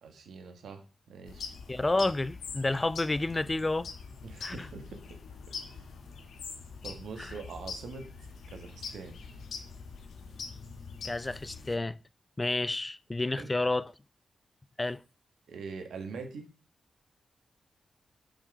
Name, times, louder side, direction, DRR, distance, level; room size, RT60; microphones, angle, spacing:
voice 1, 0.0-1.5 4.2-5.0 5.6-5.8 6.8-8.1 8.5-9.2 13.3-13.5 15.5-16.5, right 4 dB, 80° right, 1.5 m, -43 dB
sound 1, 1.3-11.8, left 5 dB, 80° left, 1.2 m, -44 dB
voice 2, 1.7-3.9 4.4-4.7 7.2-7.3 11.0-12.0 12.4-13.9 14.8-15.0, left 2 dB, 30° left, 0.5 m, -30 dB
7.2 x 5.1 x 4.9 m
supercardioid pair, 40°, 0 cm